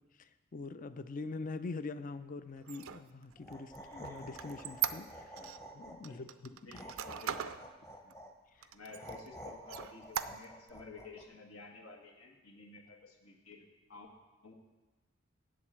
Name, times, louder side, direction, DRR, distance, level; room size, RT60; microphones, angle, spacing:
voice 1, 0.2-5.4 5.7-6.3 8.6-8.7, left 3 dB, 40° left, 13 dB, 0.4 m, -43 dB
Squeak, 2.6-5.6 6.0-7.6 8.1-8.2 8.6-9.3 9.7-10.7, right 10 dB, 70° right, 0.5 m, -39 dB
sound 1, 3.3-6.2 6.7-8.3 8.9-11.2, right 1 dB, 15° left, 0.9 m, -49 dB
voice 2, 6.0-6.4 6.6-7.6 8.0-8.1 8.7-14.1 14.4-14.5, left 3 dB, 80° left, 1 dB, 1.7 m, -53 dB
8.4 x 7.6 x 7.4 m, 1.2 s
head